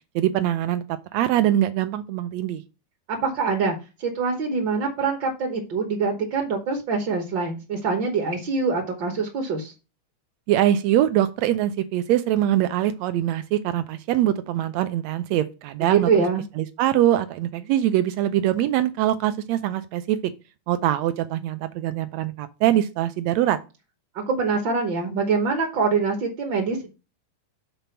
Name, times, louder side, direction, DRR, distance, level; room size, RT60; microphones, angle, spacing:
voice 1, 0.1-0.8 1.1-2.6 10.5-16.1 16.6-20.3 20.7-23.6, right 12 dB, 80° right, 1.6 m, -23 dB
voice 2, 3.1-9.7 15.8-16.4 24.1-26.9, right 4 dB, 55° right, 1.2 m, -24 dB
6.9 x 4.1 x 5.8 m
omnidirectional pair, 3.6 m